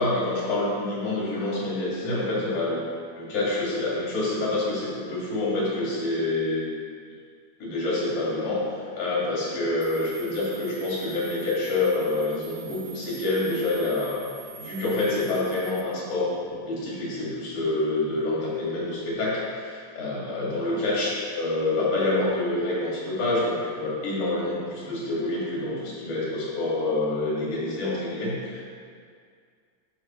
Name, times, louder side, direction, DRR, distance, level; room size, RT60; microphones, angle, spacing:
voice 1, 0.0-2.9 3.2-6.7 7.6-14.2 14.6-16.3 16.7-28.6, left 2 dB, 85° left, -6 dB, 3.5 m, -27 dB
sound 1, 9.8-15.8, right 6 dB, 65° right, 1.6 m, -44 dB
11.0 x 5.6 x 3.1 m, 2.1 s
omnidirectional pair, 3.4 m